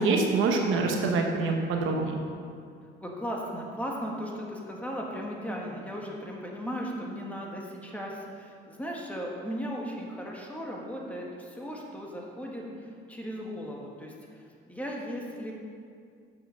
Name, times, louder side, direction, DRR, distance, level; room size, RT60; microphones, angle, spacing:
voice 1, 0.0-2.1, right 3 dB, 90° right, 2 dB, 1.0 m, -25 dB
voice 2, 3.0-15.5, equal, 5° left, -2 dB, 1.6 m, -37 dB
7.3 x 6.0 x 6.3 m, 2.2 s
cardioid pair, 90°, 20 cm